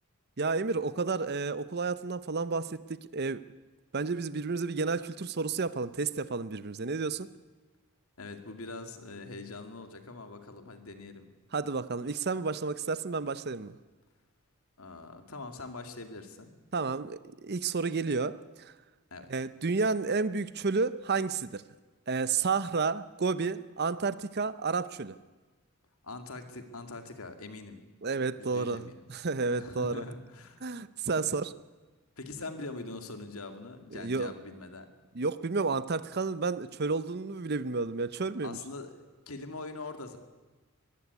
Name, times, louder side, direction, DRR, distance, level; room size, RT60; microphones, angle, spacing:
voice 1, 0.4-3.4 3.9-7.3 11.5-13.8 16.7-18.7 19.3-21.6 22.1-25.2 28.0-30.0 30.6-31.5 33.9-34.3 35.1-38.6, right 4 dB, 45° right, 15 dB, 0.7 m, -31 dB
voice 2, 8.2-11.3 14.8-16.5 19.1-19.3 26.0-27.8 28.4-29.0 29.5-30.6 31.2-31.4 32.2-34.9 38.4-40.2, left 3 dB, 75° left, 7 dB, 2.4 m, -43 dB
22.0 x 15.5 x 9.6 m, 1.3 s
head